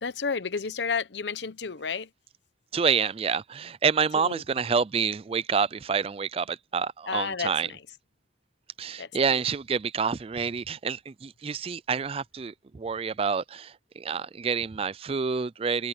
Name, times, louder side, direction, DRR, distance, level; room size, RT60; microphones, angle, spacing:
voice 1, 0.0-2.1 4.2-4.4 7.1-7.5 9.0-9.1, left 5 dB, 80° left, 0.8 m, -31 dB
voice 2, 2.7-7.7 8.8-15.9, right 6 dB, 35° right, 0.4 m, -28 dB
head